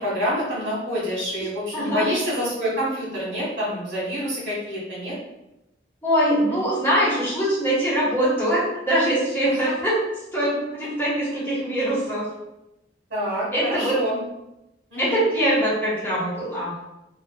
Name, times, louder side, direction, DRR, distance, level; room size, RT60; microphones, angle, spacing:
voice 1, 0.0-5.2 6.3-6.4 9.4-9.6 13.1-14.2 14.9-15.2, equal, 80° right, -6 dB, 1.4 m, -27 dB
voice 2, 1.7-2.1 6.0-8.6 8.9-10.0 10.3-12.3 13.5-14.0 15.0-16.8, equal, 10° left, -9 dB, 1.0 m, -22 dB
3.1 x 2.1 x 2.2 m, 0.90 s
head